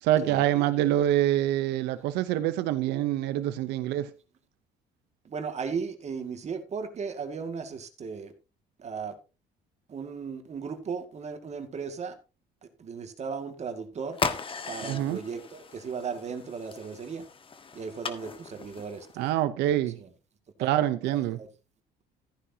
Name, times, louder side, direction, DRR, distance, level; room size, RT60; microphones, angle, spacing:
voice 1, 0.0-4.1 14.8-15.2 19.2-20.0 20.6-21.4, right 13 dB, 90° right, 0.8 m, -26 dB
voice 2, 5.2-8.3 8.8-9.1 9.9-12.1 12.8-14.2 14.7-17.2 17.7-19.3 20.0-20.1 20.6-20.7 21.1-21.5, right 5 dB, 40° right, 2.1 m, -36 dB
sound 1, 14.1-19.3, left 5 dB, 30° left, 1.4 m, -37 dB
14.5 x 10.0 x 2.8 m
cardioid pair, 110°, 17 cm